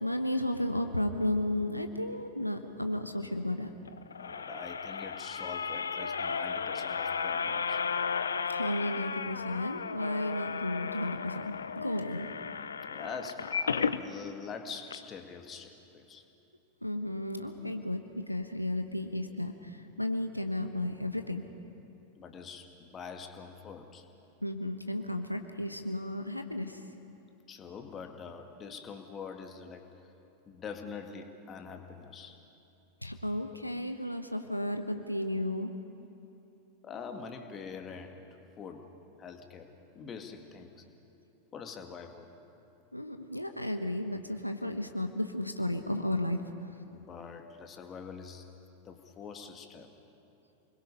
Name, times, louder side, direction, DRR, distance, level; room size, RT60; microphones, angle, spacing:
voice 1, 0.0-3.7 8.5-12.3 16.8-21.5 24.4-26.8 33.0-35.7 42.9-46.4, left 1 dB, 90° left, 6 dB, 1.1 m, -33 dB
sound 1, 3.9-14.0 14.5-14.6 14.9-15.0, left 6 dB, 70° left, 0.7 m, -34 dB
voice 2, 4.2-7.9 12.9-16.2 22.2-24.1 27.5-29.8 30.5-32.4 36.8-38.2 38.6-38.9 39.2-40.8 41.5-42.3 46.9-48.5 48.8-49.9, left 5 dB, 25° left, 5 dB, 2.0 m, -44 dB
29.0 x 21.5 x 5.5 m, 2.9 s
figure-of-eight pair, 90°, 0 cm